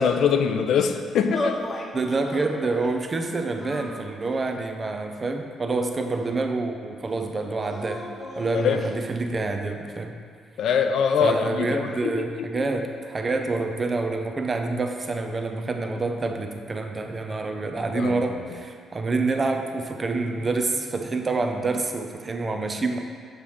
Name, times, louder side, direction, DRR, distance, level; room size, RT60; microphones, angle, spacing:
voice 1, 0.0-1.6 8.5-8.8 10.6-12.6 17.9-18.1, left 6 dB, 70° left, 7 dB, 0.4 m, -23 dB
sound 1, 1.3-1.9 2.3-2.9 3.6-4.5 5.2-6.2 7.6-9.0, left 1 dB, 35° left, 0.8 m, -35 dB
voice 2, 1.9-8.1 8.4-10.1 11.2-23.0, right 3 dB, 30° right, 5 dB, 0.6 m, -27 dB
6.6 x 3.1 x 5.4 m, 2.1 s
cardioid pair, 90°, 0 cm